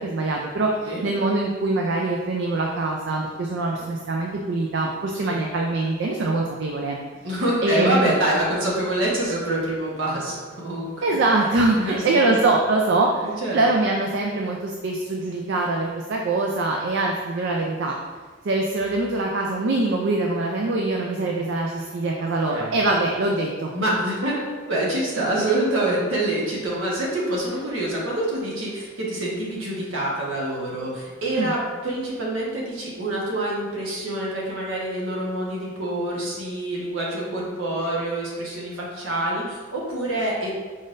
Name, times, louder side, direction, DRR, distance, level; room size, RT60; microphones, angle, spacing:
voice 1, 0.0-7.0 7.6-8.1 11.0-17.9 18.4-23.7 31.4-31.5, right 2 dB, 60° right, 0 dB, 0.4 m, -23 dB
voice 2, 7.2-10.9 11.8-12.2 13.2-13.6 21.2-21.4 22.2-22.8 23.7-40.5, right 1 dB, 75° right, -4 dB, 1.2 m, -26 dB
5.1 x 3.9 x 2.5 m, 1.4 s
head